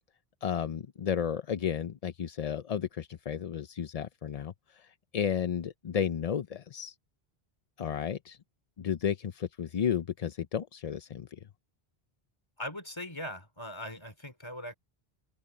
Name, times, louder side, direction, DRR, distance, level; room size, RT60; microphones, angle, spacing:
voice 1, 0.4-6.9 7.8-8.4 8.8-11.3, left 8 dB, 45° left, 0.5 m, -33 dB
voice 2, 12.6-14.7, left 1 dB, 25° left, 3.2 m, -40 dB
omnidirectional pair, 1.0 m